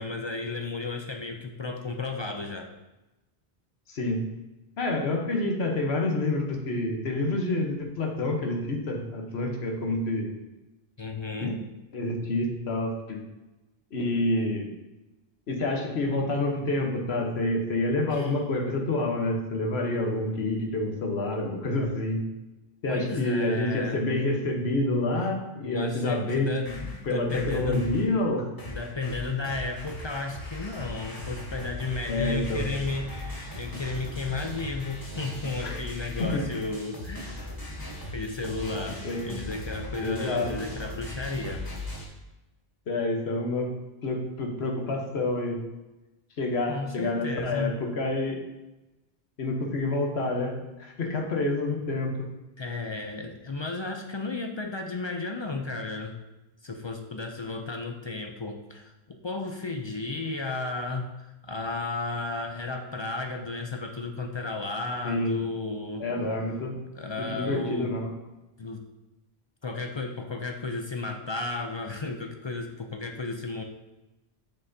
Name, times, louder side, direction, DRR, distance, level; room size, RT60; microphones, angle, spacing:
voice 1, 0.0-2.7 11.0-11.6 18.1-18.3 22.9-24.0 25.6-28.0 28.7-37.4 38.1-41.6 46.7-47.7 52.6-56.2 56.6-66.1 66.9-67.9 68.6-68.8 69.6-73.6, left 3 dB, 45° left, 3 dB, 0.3 m, -33 dB
voice 2, 3.9-4.2 4.8-10.3 11.4-11.5 11.9-13.2 13.9-14.7 15.5-22.2 22.8-26.5 27.1-28.5 32.1-32.7 35.6-35.8 36.2-36.4 37.4-37.5 39.0-39.3 40.0-40.5 42.9-43.7 44.0-45.6 46.4-48.4 49.4-52.3 65.0-65.4 66.0-66.8 67.2-68.1, left 2 dB, 80° left, 2 dB, 1.3 m, -28 dB
sound 1, 26.4-28.1 28.6-42.1, left 1 dB, 20° left, 1.2 m, -38 dB
6.8 x 5.7 x 2.7 m, 1.0 s
omnidirectional pair, 1.0 m